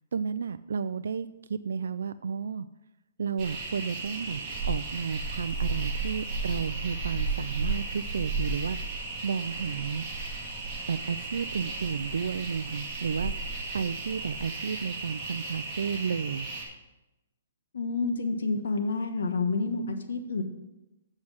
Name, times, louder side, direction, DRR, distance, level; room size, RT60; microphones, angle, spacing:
voice 1, 0.1-2.7 3.2-8.8 9.2-10.0 10.9-13.3 13.7-16.5, right 6 dB, 80° right, 12 dB, 0.3 m, -32 dB
sound 1, 3.4-16.6, right 3 dB, 15° right, 1.9 m, -34 dB
voice 2, 17.7-20.4, left 3 dB, 90° left, 6 dB, 1.3 m, -29 dB
7.4 x 6.2 x 6.1 m, 0.97 s
hypercardioid pair, 175°, 0 cm